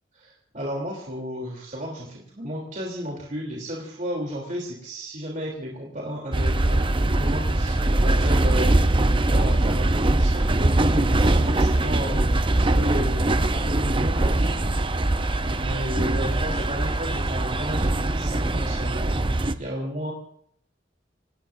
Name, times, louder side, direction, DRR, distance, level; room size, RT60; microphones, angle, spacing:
voice 1, 0.2-8.8 9.3-14.6 15.4-20.1, equal, 45° right, -2 dB, 3.2 m, -33 dB
sound 1, 6.3-19.5, right 1 dB, 30° right, 0.7 m, -22 dB
26.5 x 18.5 x 2.6 m, 0.64 s
head